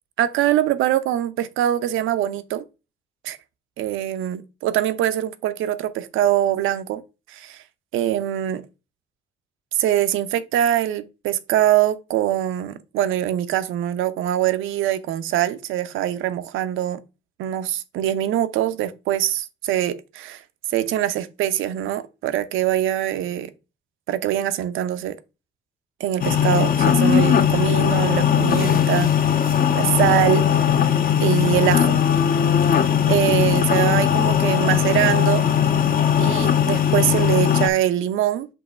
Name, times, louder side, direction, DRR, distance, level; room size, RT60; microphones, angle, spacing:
voice 1, 0.2-2.6 3.2-3.4 3.8-7.0 7.3-7.6 7.9-8.6 9.7-17.0 17.4-20.4 20.7-23.5 24.1-25.2 26.0-29.3 29.7-30.7 31.2-32.0 33.1-35.4 36.2-38.5, right 12 dB, 90° right, 0.7 m, -23 dB
sound 1, 26.2-37.7, left 8 dB, 45° left, 0.9 m, -19 dB
5.5 x 3.1 x 5.5 m
cardioid pair, 90°, 20 cm